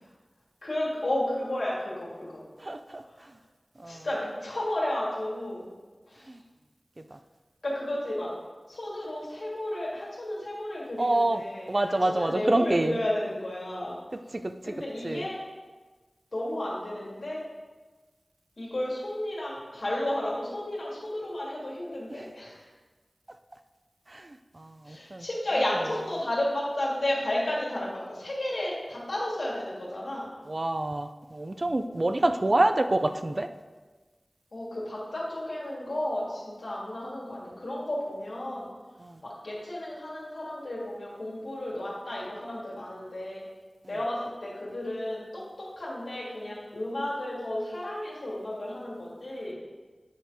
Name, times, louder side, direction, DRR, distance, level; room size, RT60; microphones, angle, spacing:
voice 1, 0.6-2.4 3.0-3.1 3.8-5.7 6.1-6.3 7.6-8.3 8.7-14.0 14.6-15.4 16.3-17.4 18.6-22.7 24.8-30.3 34.5-38.7 39.2-43.5 43.9-49.5, left 1 dB, 80° left, -5 dB, 2.4 m, -32 dB
voice 2, 2.6-3.0 3.8-4.1 6.3-6.4 7.1-7.2 11.0-11.4 11.7-13.0 14.4-14.5 15.0-15.2 24.1-25.3 30.5-33.5 39.0-39.2, right 1 dB, 50° right, 8 dB, 0.5 m, -27 dB
9.3 x 4.4 x 4.9 m, 1.3 s
wide cardioid pair, 45°, 0 cm